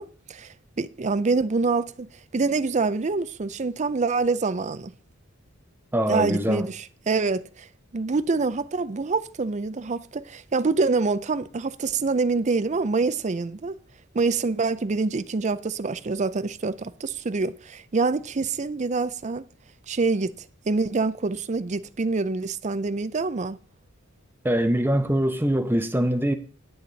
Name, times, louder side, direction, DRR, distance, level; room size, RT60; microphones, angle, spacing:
voice 1, 0.0-4.9 6.1-7.7 7.9-13.8 14.1-19.4 19.9-20.3 20.7-23.6, right 4 dB, 35° right, 0.5 m, -26 dB
voice 2, 5.9-6.7 24.4-26.3, equal, 10° right, 0.9 m, -23 dB
10.0 x 8.8 x 4.0 m
head